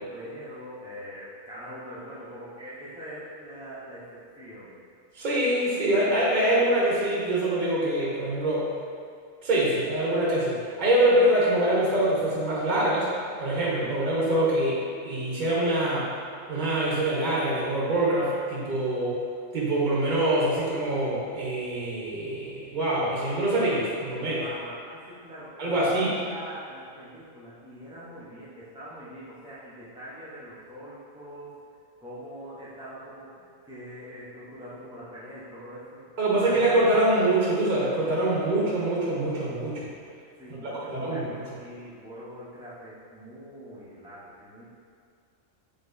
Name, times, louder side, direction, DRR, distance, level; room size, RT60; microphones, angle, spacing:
voice 1, 0.0-4.8 24.4-31.5 32.0-36.1 36.4-37.2 40.4-44.6, equal, 5° right, -11 dB, 0.5 m, -43 dB
voice 2, 5.1-8.7 9.4-13.1 13.4-16.1 16.5-19.2 19.5-24.4 25.6-26.1 36.2-39.9 40.6-41.3, right 1 dB, 35° right, -7 dB, 1.0 m, -24 dB
4.9 x 3.5 x 2.6 m, 2.3 s
omnidirectional pair, 1.4 m